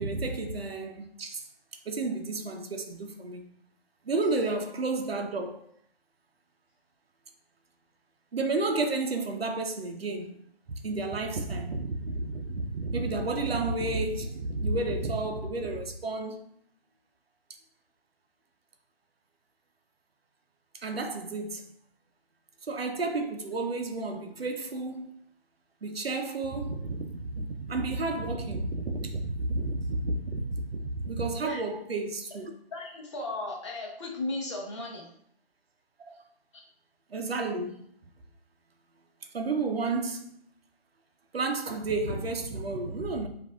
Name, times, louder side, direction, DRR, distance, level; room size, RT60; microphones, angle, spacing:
voice 1, 0.0-1.5 1.9-3.5 4.0-5.7 8.3-10.4 10.8-16.4 20.8-21.7 22.7-25.1 25.8-32.5 36.1-36.2 37.1-37.8 39.3-40.4 41.3-43.3, right 3 dB, 75° right, 0.7 m, -31 dB
voice 2, 32.7-35.1, left 2 dB, 30° left, 0.8 m, -35 dB
6.9 x 2.6 x 2.3 m
figure-of-eight pair, 145°, 30 cm